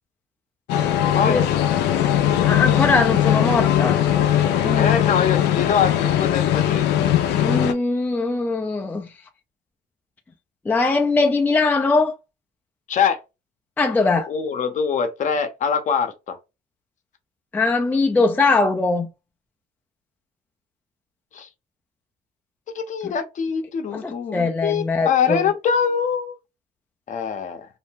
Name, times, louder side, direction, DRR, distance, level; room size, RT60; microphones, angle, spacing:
sound 1, 0.7-7.7, left 11 dB, 80° left, 0.5 m, -19 dB
voice 1, 0.9-1.4 4.7-6.9 12.9-13.2 14.3-16.4 21.3-21.5 22.7-26.4 27.1-27.7, left 7 dB, 45° left, 0.7 m, -23 dB
voice 2, 2.5-4.0 4.6-4.9 7.4-9.1 10.7-12.1 13.8-14.3 17.5-19.1 23.0-23.1 23.9-25.4, left 3 dB, 10° left, 0.4 m, -21 dB
2.6 x 2.1 x 3.3 m
cardioid pair, 110°, 17 cm